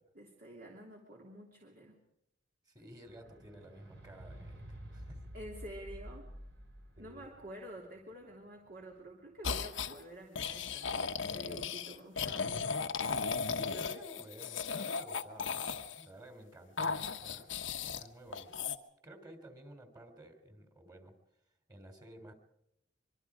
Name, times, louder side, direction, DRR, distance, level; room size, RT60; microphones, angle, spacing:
voice 1, 0.1-1.9 5.3-6.3 7.0-12.8, right 1 dB, 50° right, 0 dB, 3.0 m, -49 dB
voice 2, 2.7-5.2 7.0-7.2 13.5-17.5 17.9-18.6 19.0-21.2 21.7-22.3, right 1 dB, 20° right, 6 dB, 3.3 m, -53 dB
sound 1, 3.0-9.5 10.3-10.4, equal, 70° right, 5.2 m, -50 dB
sound 2, 9.4-9.9 10.3-16.0 16.8-18.1 18.3-18.7, left 5 dB, 85° left, 1.2 m, -36 dB
24.5 x 24.0 x 5.0 m, 0.80 s
head